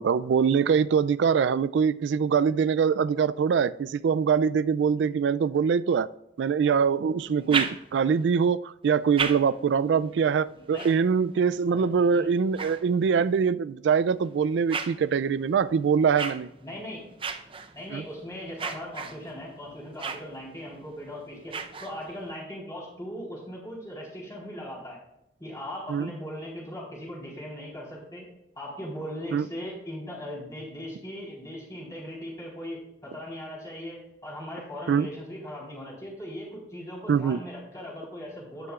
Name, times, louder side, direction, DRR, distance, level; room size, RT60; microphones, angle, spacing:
voice 1, 0.0-6.1 6.4-16.5 17.9-18.0 25.9-26.1 29.3-29.5 34.9-35.1 37.1-37.4, right 6 dB, 85° right, 17 dB, 0.3 m, -23 dB
sound 1, 7.2-8.2 8.8-13.4 14.0-22.3, right 5 dB, 30° right, 0.7 m, -37 dB
voice 2, 10.5-10.9 11.7-12.3 16.6-17.0 17.7-25.0 25.4-28.3 28.6-38.7, equal, 20° left, -4 dB, 3.9 m, -39 dB
12.5 x 9.6 x 2.4 m, 0.83 s
head